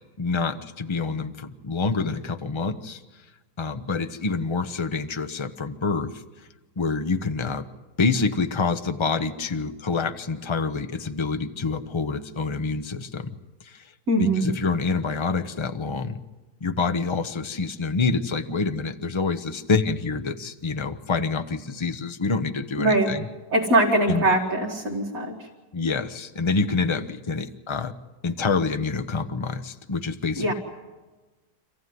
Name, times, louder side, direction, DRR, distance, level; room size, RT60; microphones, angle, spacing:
voice 1, 0.2-3.0 3.6-6.2 6.8-7.7 8.0-13.3 13.6-13.8 14.2-16.2 16.6-23.3 24.1-24.2 25.7-27.9 28.2-30.5, left 4 dB, 30° left, 9 dB, 0.6 m, -27 dB
voice 2, 14.1-14.5 22.8-23.1 23.5-25.3 30.4-30.5, right 1 dB, 60° right, -2 dB, 2.2 m, -22 dB
26.5 x 15.0 x 9.4 m, 1.2 s
omnidirectional pair, 1.7 m